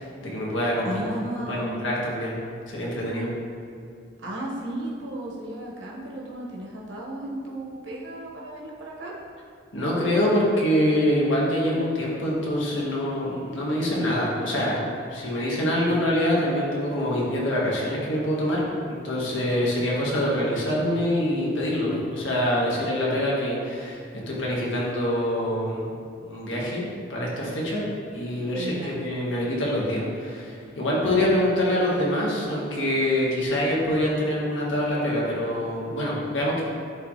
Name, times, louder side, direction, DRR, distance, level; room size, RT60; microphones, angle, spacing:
voice 1, 0.0-1.0 1.5-2.4 2.7-3.3 9.7-14.8 15.1-24.0 24.3-25.9 26.3-36.6, left 1 dB, 75° left, -5 dB, 1.5 m, -25 dB
voice 2, 0.8-1.8 4.2-9.1 28.5-29.0, right 1 dB, 70° right, -4 dB, 1.3 m, -34 dB
10.5 x 3.7 x 3.2 m, 2.4 s
head